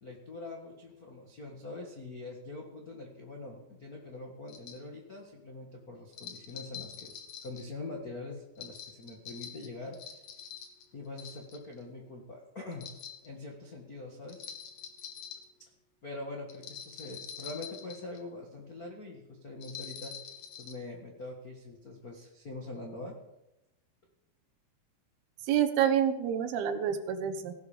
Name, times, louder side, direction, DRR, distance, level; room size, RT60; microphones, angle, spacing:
voice 1, 0.0-10.0 10.9-12.9 13.2-14.5 16.0-20.1 20.6-23.2, left 2 dB, 85° left, 1 dB, 0.8 m, -43 dB
sound 1, 4.5-4.8 6.1-7.6 8.6-10.8 11.2-11.8 12.7-13.3 14.3-15.4 16.5-18.2 19.6-20.8, left 8 dB, 55° left, 2.4 m, -45 dB
voice 2, 25.4-27.5, right 9 dB, 75° right, 8 dB, 2.9 m, -28 dB
17.0 x 12.5 x 5.1 m, 0.91 s
omnidirectional pair, 4.8 m